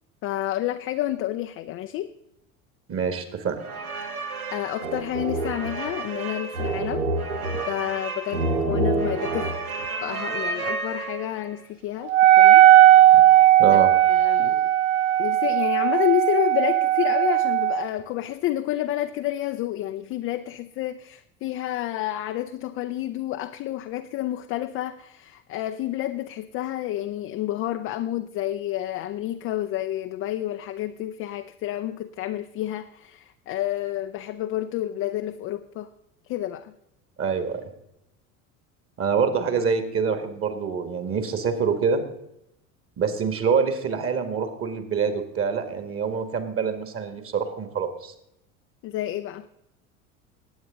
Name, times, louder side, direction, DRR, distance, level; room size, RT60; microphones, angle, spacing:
voice 1, 0.2-2.1 4.5-7.0 7.7-9.5 10.0-12.6 13.7-13.8 14.1-14.7 15.2-35.9 36.3-36.7 48.8-49.5, left 13 dB, 35° left, 8 dB, 0.5 m, -29 dB
voice 2, 2.9-3.6 13.1-13.2 13.6-13.9 37.2-37.6 39.0-42.0 43.0-48.1, right 6 dB, 30° right, 9 dB, 1.8 m, -25 dB
sound 1, 3.6-11.5, right 2 dB, 80° right, 1.2 m, -29 dB
Wind instrument woodwind instrument, 12.1-17.9, right 13 dB, 55° right, 0.5 m, -16 dB
19.5 x 8.7 x 3.7 m, 0.83 s
figure-of-eight pair, 70°, 42 cm